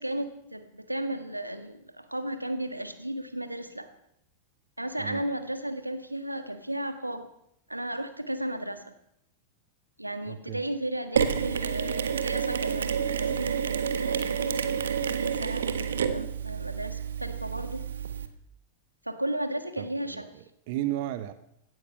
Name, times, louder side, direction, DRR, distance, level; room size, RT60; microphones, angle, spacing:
voice 1, 0.0-3.9 4.8-7.3 7.7-8.9 10.0-17.8 19.0-20.3, right 1 dB, 85° right, 1.6 m, -34 dB
voice 2, 10.3-10.6 19.8-21.3, right 14 dB, 50° right, 1.0 m, -34 dB
Mechanisms, 11.2-18.3, right 7 dB, 65° right, 1.3 m, -29 dB
17.0 x 13.0 x 5.8 m
figure-of-eight pair, 90°, 0 cm